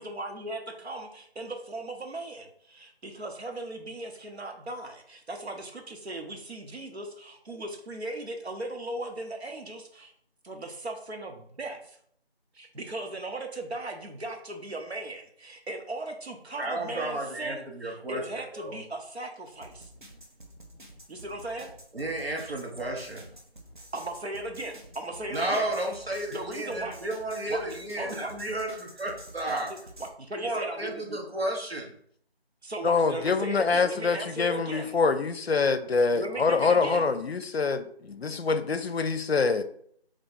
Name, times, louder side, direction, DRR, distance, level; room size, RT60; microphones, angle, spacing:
voice 1, 0.0-10.1 10.4-12.0 12.5-19.8 21.1-21.7 23.9-25.7 26.1-27.0 27.5-28.3 29.5-31.2 32.6-35.0 36.1-37.1, right 2 dB, 85° right, 4 dB, 1.0 m, -37 dB
voice 2, 16.6-18.2 18.5-18.8 21.9-23.3 25.3-29.7 30.4-31.9, right 1 dB, 70° right, 0 dB, 1.3 m, -32 dB
sound 1, 19.5-30.1, right 1 dB, 50° right, 0.7 m, -49 dB
voice 3, 32.8-39.6, left 4 dB, 75° left, 11 dB, 0.6 m, -25 dB
3.3 x 3.3 x 4.1 m, 0.64 s
figure-of-eight pair, 180°, 31 cm